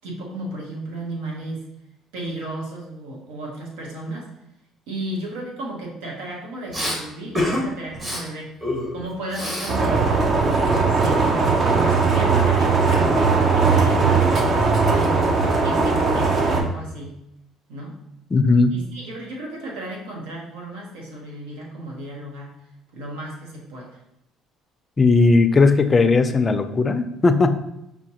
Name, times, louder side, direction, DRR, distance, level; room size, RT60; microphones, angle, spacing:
voice 1, 0.0-1.7 2.1-4.3 4.9-8.5 8.9-10.1 10.7-17.2 17.7-17.9 18.7-22.6 22.9-24.0, right 1 dB, 80° right, -1 dB, 1.0 m, -34 dB
Respiratory sounds, 6.7-7.0 7.3-7.6 7.9-8.2 8.6-9.8 10.0-11.5, left 1 dB, 25° right, 1.2 m, -28 dB
sound 1, 9.7-16.6, right 4 dB, 45° right, 0.6 m, -19 dB
voice 2, 18.3-18.7 25.0-27.6, left 3 dB, 30° left, 9 dB, 0.4 m, -17 dB
5.7 x 2.2 x 2.8 m, 0.84 s
supercardioid pair, 75°, 0 cm